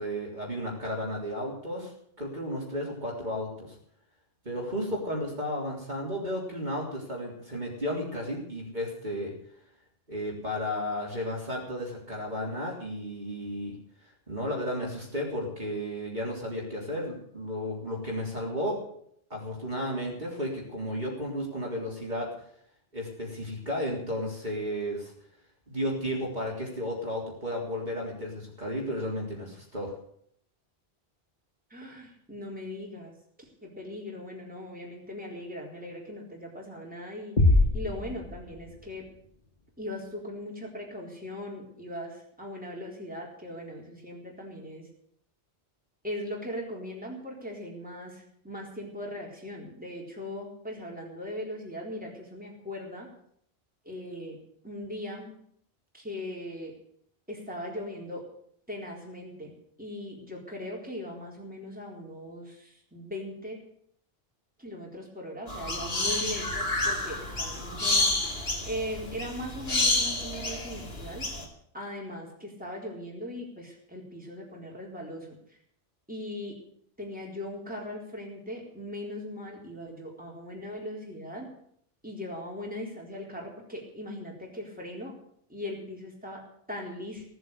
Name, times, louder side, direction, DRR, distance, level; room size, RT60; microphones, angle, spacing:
voice 1, 0.0-1.9 2.2-3.8 4.5-9.3 10.1-13.8 14.3-18.8 19.3-22.3 22.9-25.1 25.7-29.9, equal, 45° right, -3 dB, 3.8 m, -33 dB
voice 2, 31.7-33.1 33.4-39.1 39.8-44.9 46.0-53.1 53.8-54.4 54.6-55.3 55.9-56.7 57.3-58.3 58.7-59.5 59.8-63.6 64.6-68.1 68.6-71.3 71.7-75.6 76.1-76.6 77.0-81.5 82.0-85.1 85.5-87.2, left 1 dB, 10° right, -3 dB, 4.1 m, -39 dB
sound 1, 37.4-39.1, left 2 dB, 45° left, 1.8 m, -24 dB
sound 2, 65.5-71.5, left 2 dB, 70° left, 2.7 m, -29 dB
17.5 x 8.0 x 8.3 m, 0.66 s
omnidirectional pair, 1.1 m